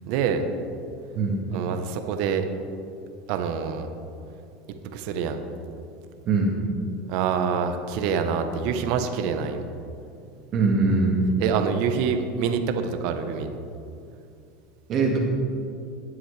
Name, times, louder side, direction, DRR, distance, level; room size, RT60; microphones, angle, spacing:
voice 1, 0.1-0.4 1.5-2.4 3.3-3.9 4.9-5.4 7.1-9.6 11.4-13.5, right 6 dB, 65° right, 7 dB, 1.0 m, -26 dB
voice 2, 10.5-11.2 14.9-15.2, right 3 dB, 45° right, 0 dB, 1.9 m, -21 dB
19.0 x 7.6 x 3.4 m, 2.5 s
hypercardioid pair, 100°, 0 cm